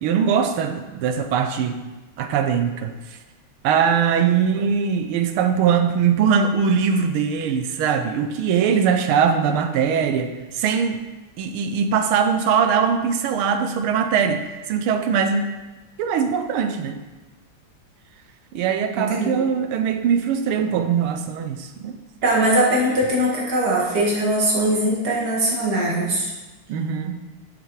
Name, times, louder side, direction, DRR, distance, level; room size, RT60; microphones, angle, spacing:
voice 1, 0.0-1.8 2.2-3.0 3.6-11.0 11.4-15.5 16.0-17.0 18.5-22.0 26.7-27.2, right 7 dB, 85° right, 7 dB, 1.6 m, -21 dB
voice 2, 19.0-19.4 22.2-26.3, right 1 dB, 50° right, -3 dB, 2.4 m, -21 dB
8.0 x 6.0 x 4.8 m, 1.2 s
omnidirectional pair, 2.3 m